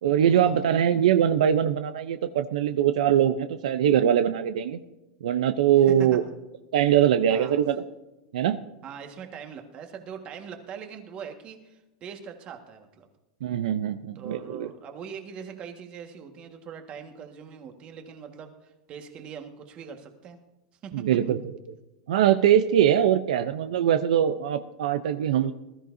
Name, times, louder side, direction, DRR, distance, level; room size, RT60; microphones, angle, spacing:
voice 1, 0.0-4.8 5.2-6.2 6.7-7.8 8.3-8.6 13.4-14.7 20.9-21.4 22.1-25.5, right 10 dB, 80° right, 9 dB, 0.7 m, -22 dB
voice 2, 5.8-6.2 7.3-7.6 8.8-13.1 14.1-20.4 20.8-20.9, right 7 dB, 30° right, 5 dB, 1.7 m, -42 dB
20.0 x 13.0 x 2.7 m, 1.0 s
supercardioid pair, 150°, 4 cm